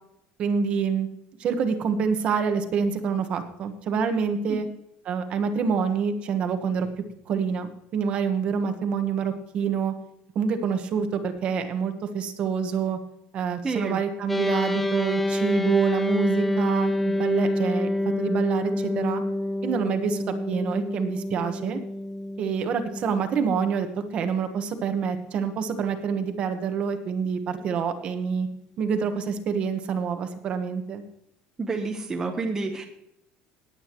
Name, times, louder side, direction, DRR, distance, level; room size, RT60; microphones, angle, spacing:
voice 1, 0.4-1.1 1.4-4.7 5.0-6.9 7.3-9.9 10.3-13.0 13.3-17.9 18.2-19.2 19.6-21.8 22.4-23.9 24.1-28.5 28.8-31.0, right 6 dB, 35° right, 7 dB, 1.3 m, -27 dB
voice 2, 13.6-14.0 31.6-32.8, right 3 dB, 15° right, 1 dB, 1.0 m, -29 dB
sound 1, 14.3-25.8, left 1 dB, 5° left, 0.6 m, -28 dB
18.0 x 8.8 x 3.1 m, 0.76 s
cardioid pair, 180°, 3 cm